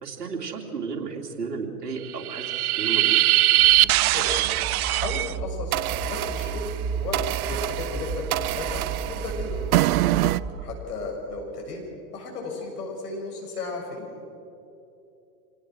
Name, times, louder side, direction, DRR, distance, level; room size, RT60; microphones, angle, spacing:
voice 1, 0.0-3.2, right 4 dB, 80° right, 2 dB, 2.9 m, -33 dB
sound 1, 2.1-5.3 5.7-10.4, right 15 dB, 65° right, 0.6 m, -23 dB
sound 2, 3.6-10.7, right 5 dB, 30° right, 1.5 m, -33 dB
voice 2, 4.1-4.5 4.9-9.7 10.6-11.8 12.1-14.2, left 3 dB, 70° left, 0 dB, 7.1 m, -34 dB
26.5 x 19.0 x 6.3 m, 2.8 s
hypercardioid pair, 105°, 47 cm